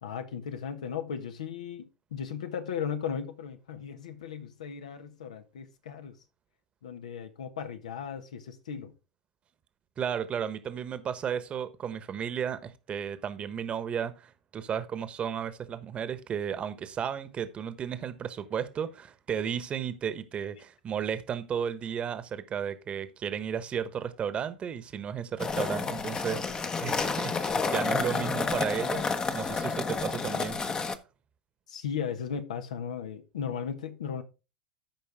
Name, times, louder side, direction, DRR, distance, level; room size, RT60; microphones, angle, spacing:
voice 1, 0.0-6.2 6.8-8.9 31.7-34.2, left 7 dB, 75° left, 1.4 m, -36 dB
voice 2, 10.0-30.9, right 8 dB, 30° right, 1.2 m, -34 dB
sound 1, 25.4-31.0, left 4 dB, 20° left, 1.0 m, -30 dB
13.5 x 5.3 x 3.6 m
hypercardioid pair, 90°, 4 cm